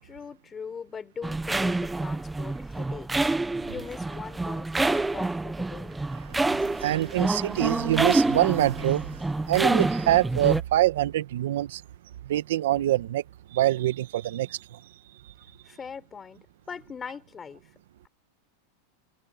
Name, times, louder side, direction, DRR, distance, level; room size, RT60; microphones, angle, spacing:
voice 1, 0.0-6.0 15.6-16.4 16.7-17.6, left 6 dB, 20° left, 4.0 m, -41 dB
sound 1, 1.2-10.6, right 2 dB, 10° right, 0.8 m, -27 dB
voice 2, 6.3-9.1 9.5-11.8 12.3-13.2 13.5-14.6, right 14 dB, 75° right, 1.2 m, -25 dB
supercardioid pair, 130°, 0 cm